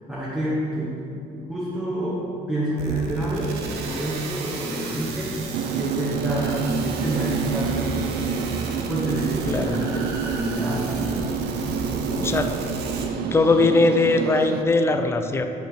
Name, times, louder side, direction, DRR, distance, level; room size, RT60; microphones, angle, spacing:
voice 1, 0.1-0.9 1.3-5.4 5.7-8.5 8.9-13.7, right 1 dB, 5° right, -10 dB, 1.5 m, -29 dB
sound 1, 2.8-13.1, right 3 dB, 80° right, 0.8 m, -34 dB
sound 2, 5.5-14.6, right 7 dB, 65° right, 0.4 m, -28 dB
voice 2, 9.5-9.8 12.2-12.5 13.3-15.4, left 3 dB, 15° left, 7 dB, 0.4 m, -20 dB
5.8 x 4.5 x 5.7 m, 2.8 s
cardioid pair, 110°, 17 cm